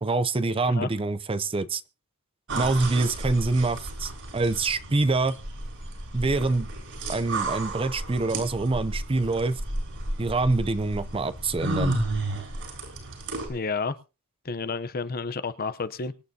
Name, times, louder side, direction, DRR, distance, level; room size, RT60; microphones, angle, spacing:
voice 1, 0.0-1.8 2.5-5.4 6.1-6.7 7.1-9.6 10.2-12.0, right 3 dB, 25° right, 0.6 m, -25 dB
sound 1, 2.5-13.5, right 2 dB, 60° right, 6.8 m, -33 dB
voice 2, 13.5-14.0 14.4-16.1, left 4 dB, 45° left, 0.8 m, -30 dB
24.5 x 9.3 x 2.8 m
head